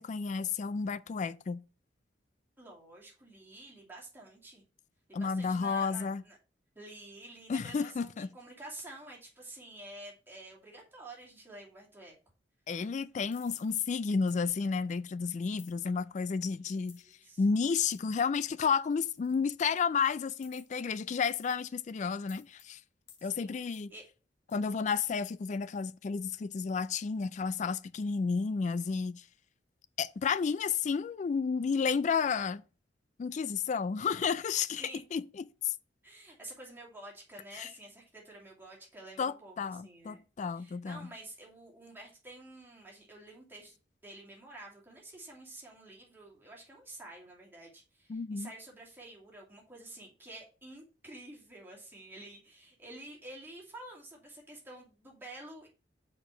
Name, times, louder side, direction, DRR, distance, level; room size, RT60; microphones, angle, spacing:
voice 1, 0.0-1.6 5.1-6.2 7.5-8.3 12.7-17.0 17.4-22.8 23.2-23.9 24.5-29.2 30.0-32.6 33.2-34.8 35.1-35.2 35.6-35.7 37.6-37.7 39.2-41.1 48.1-48.5, left 5 dB, 40° left, 0.3 m, -31 dB
voice 2, 2.6-4.6 5.1-6.4 6.7-12.1 16.5-17.4 23.2-23.6 23.9-24.0 34.8-35.0 36.0-40.3 40.5-55.7, right 2 dB, 10° right, 2.7 m, -50 dB
sound 1, 13.3-13.9 14.3-14.5 15.6-15.8 16.9-17.1 17.9-18.0 19.0-19.3 20.4-20.8 21.3-21.7 22.3-22.6 23.1-23.3 23.7-23.9 24.5-24.6 25.3-25.4, left 8 dB, 85° left, 1.5 m, -56 dB
6.5 x 4.9 x 5.0 m
head